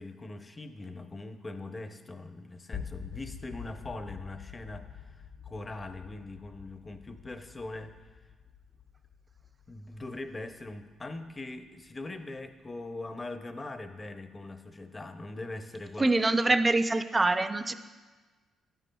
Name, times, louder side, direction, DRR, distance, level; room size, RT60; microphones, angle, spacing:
voice 1, 0.0-8.2 9.7-16.1, left 2 dB, 25° left, 7 dB, 0.7 m, -41 dB
sound 1, 2.7-12.7, left 7 dB, 75° left, 1.7 m, -47 dB
voice 2, 16.0-17.7, right 2 dB, 20° right, 10 dB, 0.4 m, -25 dB
12.5 x 9.1 x 2.3 m, 1.3 s
cardioid pair, 90°, 0 cm